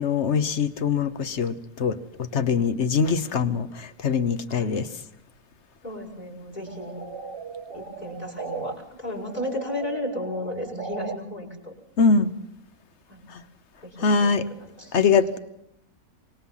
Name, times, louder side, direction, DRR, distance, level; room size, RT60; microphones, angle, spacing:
voice 1, 0.0-2.0 2.3-4.8 12.0-12.3 13.3-13.4 14.0-14.4 14.9-15.4, left 5 dB, 55° left, 1.3 m, -22 dB
voice 2, 5.8-7.0 7.7-11.7 13.1-13.3 13.8-15.1, left 1 dB, 30° left, 5.6 m, -34 dB
sound 1, 6.7-8.7 9.1-11.2, right 5 dB, 50° right, 1.2 m, -37 dB
25.0 x 21.0 x 5.7 m
omnidirectional pair, 1.5 m